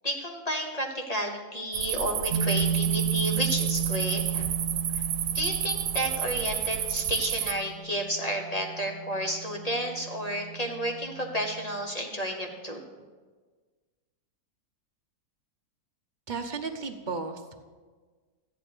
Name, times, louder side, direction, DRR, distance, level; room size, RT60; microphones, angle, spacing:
voice 1, 0.0-4.5 4.9-5.0 5.3-12.8, equal, 25° left, 2 dB, 1.1 m, -31 dB
sound 1, 1.7-7.5, right 10 dB, 80° right, 1.3 m, -31 dB
sound 2, 2.3-11.8, right 7 dB, 55° right, 1.5 m, -34 dB
voice 2, 16.3-17.6, right 4 dB, 35° right, 5 dB, 0.9 m, -34 dB
13.5 x 9.8 x 5.1 m, 1.4 s
omnidirectional pair, 1.7 m